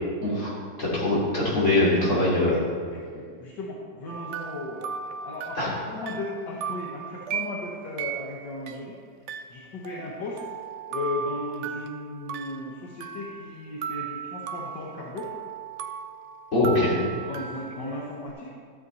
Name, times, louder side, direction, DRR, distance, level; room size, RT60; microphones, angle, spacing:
voice 1, 0.2-0.5 0.8-2.6 5.6-5.7 16.5-17.0, left 2 dB, 40° left, -8 dB, 3.7 m, -22 dB
voice 2, 2.9-4.9 5.2-9.0 9.5-10.4 10.9-15.3 17.2-18.5, left 2 dB, 75° left, -4 dB, 1.7 m, -36 dB
sound 1, 4.1-8.8 9.3-13.6 13.8-18.3, right 7 dB, 80° right, 0.6 m, -36 dB
13.0 x 7.7 x 4.1 m, 2.1 s
omnidirectional pair, 1.9 m